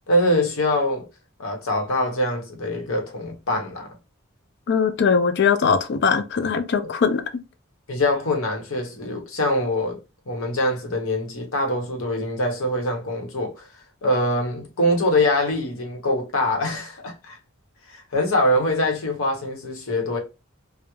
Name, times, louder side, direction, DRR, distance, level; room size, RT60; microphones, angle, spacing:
voice 1, 0.1-1.0 1.4-3.9 6.8-6.9 7.9-10.0 10.3-13.7 14.0-17.4 17.9-20.2, left 1 dB, 75° left, 0.8 m, -23 dB
voice 2, 4.7-7.2, left 6 dB, 55° left, 0.4 m, -20 dB
2.9 x 2.0 x 2.2 m
head